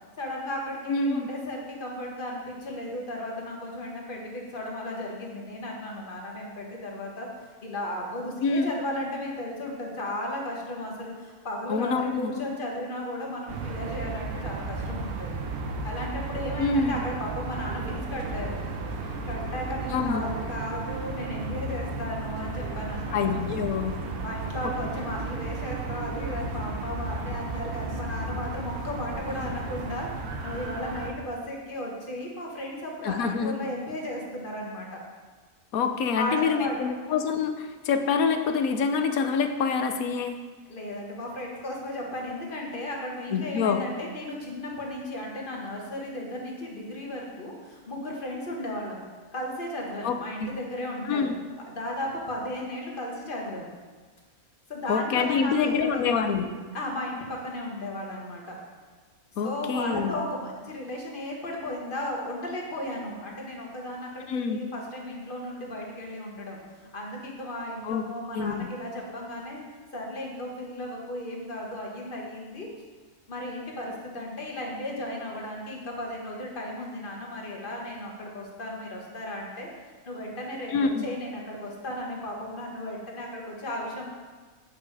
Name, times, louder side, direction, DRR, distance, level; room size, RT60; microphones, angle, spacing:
voice 1, 0.2-7.3 7.6-15.4 15.8-18.6 19.3-23.3 24.2-30.1 30.4-35.0 36.2-36.8 40.7-49.0 49.3-51.3 51.7-53.7 54.7-56.2 56.7-58.6 59.4-66.6 66.9-69.7 69.9-72.7 73.3-79.7 80.1-84.1, left 1 dB, 35° left, -1 dB, 1.6 m, -35 dB
voice 2, 0.9-1.3 8.4-8.7 11.7-12.3 16.6-17.0 19.9-20.2 23.1-24.0 33.0-33.6 35.7-40.3 43.3-43.8 50.0-50.5 51.0-51.3 54.9-56.5 59.4-60.2 64.3-64.6 67.8-68.0 68.3-68.7 80.7-81.1, left 5 dB, 75° left, 7 dB, 1.1 m, -26 dB
sound 1, 13.5-31.1, right 3 dB, 85° right, 1.3 m, -34 dB
8.8 x 6.1 x 4.8 m, 1.4 s
omnidirectional pair, 1.5 m